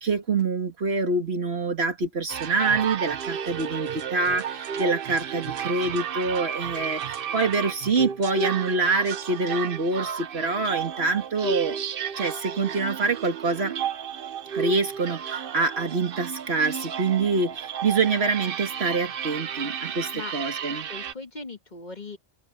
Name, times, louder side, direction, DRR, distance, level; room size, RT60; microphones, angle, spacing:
voice 1, 0.0-11.8 12.2-13.7 14.5-20.9, right 3 dB, 90° right, 2.3 m, -26 dB
sound 1, 2.3-21.1, right 8 dB, 65° right, 0.9 m, -32 dB
voice 2, 19.8-20.3 20.6-22.2, left 3 dB, 45° left, 1.9 m, -40 dB
omnidirectional pair, 1.0 m